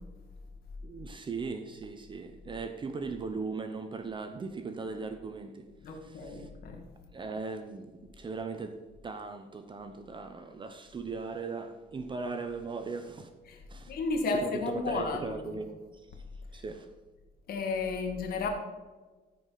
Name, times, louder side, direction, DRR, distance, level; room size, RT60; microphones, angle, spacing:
voice 1, 0.8-5.7 6.0-6.5 7.1-13.3 13.7-14.0 14.4-16.2 16.5-16.9, right 4 dB, 30° right, 0.8 m, -38 dB
voice 2, 5.8-6.8 13.5-13.6 13.9-15.6 16.5-16.6 17.5-18.5, left 3 dB, 65° left, 1.8 m, -33 dB
15.0 x 5.1 x 5.6 m
cardioid pair, 110°, 17 cm